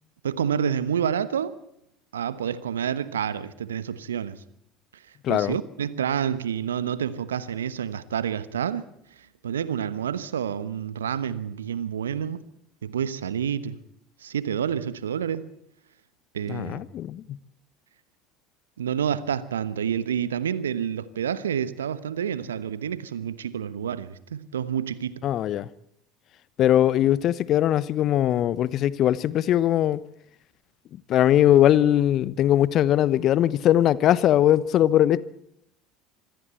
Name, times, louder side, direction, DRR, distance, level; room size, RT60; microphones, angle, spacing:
voice 1, 0.2-1.6 2.1-4.4 5.3-8.8 9.4-12.4 12.8-13.8 14.2-15.5 16.3-16.8 18.8-25.2, right 8 dB, 80° right, 1.1 m, -28 dB
voice 2, 5.2-5.6 16.5-17.4 25.2-25.7 26.6-30.0 31.1-35.2, left 12 dB, 50° left, 1.0 m, -20 dB
26.5 x 22.0 x 4.5 m
figure-of-eight pair, 65°, 0 cm